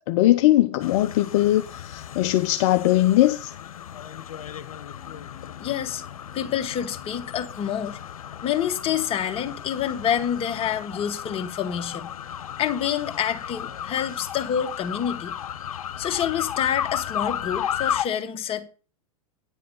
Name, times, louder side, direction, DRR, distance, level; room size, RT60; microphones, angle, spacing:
voice 1, 0.1-3.5, left 15 dB, 55° left, 0.9 m, -20 dB
sound 1, 0.8-18.0, left 9 dB, 80° left, 1.2 m, -34 dB
voice 2, 4.9-8.0 8.4-12.1 12.6-15.4 16.0-18.6, left 9 dB, 30° left, 2.0 m, -28 dB
10.5 x 7.6 x 5.4 m
hypercardioid pair, 110°, 18 cm